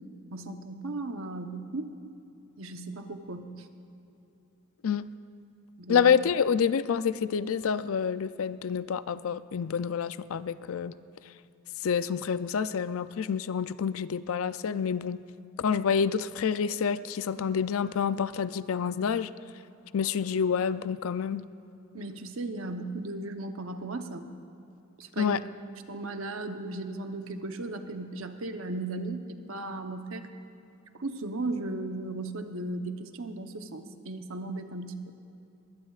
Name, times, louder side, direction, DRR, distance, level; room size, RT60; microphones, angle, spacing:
voice 1, 0.3-1.9 2.6-3.7 5.8-6.0 21.9-24.3 25.0-25.4 25.9-30.3 30.9-35.0, right 2 dB, 70° right, 7 dB, 0.9 m, -36 dB
voice 2, 5.9-10.9 11.8-15.2 15.6-19.3 19.9-21.4 25.2-25.4, left 7 dB, 70° left, 14 dB, 0.4 m, -28 dB
21.0 x 20.0 x 2.4 m, 2.8 s
head